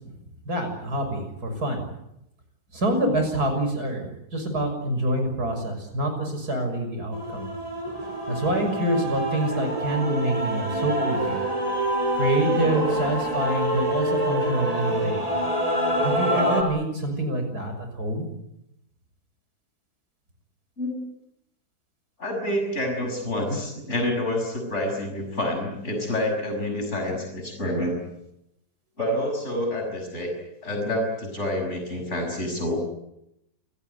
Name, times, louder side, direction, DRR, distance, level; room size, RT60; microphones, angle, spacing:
voice 1, 0.5-1.8 2.7-7.5 8.3-11.4 12.2-15.2 16.0-18.3, right 1 dB, 80° right, 5 dB, 6.8 m, -26 dB
Male singing / Female singing / Musical instrument, 7.1-16.6, right 1 dB, 20° right, 4.8 m, -26 dB
voice 2, 22.2-28.0 29.0-30.3 30.6-32.9, left 1 dB, 45° left, 2 dB, 6.6 m, -28 dB
28.5 x 18.0 x 9.5 m, 0.83 s
omnidirectional pair, 1.6 m